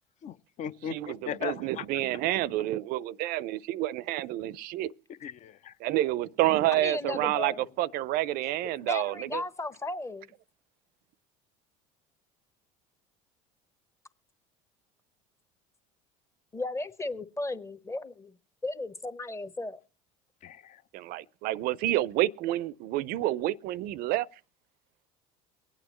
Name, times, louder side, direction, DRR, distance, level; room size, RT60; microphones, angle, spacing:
voice 1, 0.2-2.2 5.2-5.7 20.4-20.8, left 9 dB, 45° left, 0.6 m, -38 dB
voice 2, 0.9-4.9 5.8-9.4 20.9-24.3, right 15 dB, 60° right, 0.5 m, -29 dB
voice 3, 6.8-7.6 8.8-10.3 16.5-18.4 18.6-19.8, left 2 dB, 15° left, 0.9 m, -35 dB
23.5 x 8.9 x 3.0 m
hypercardioid pair, 85°, 17 cm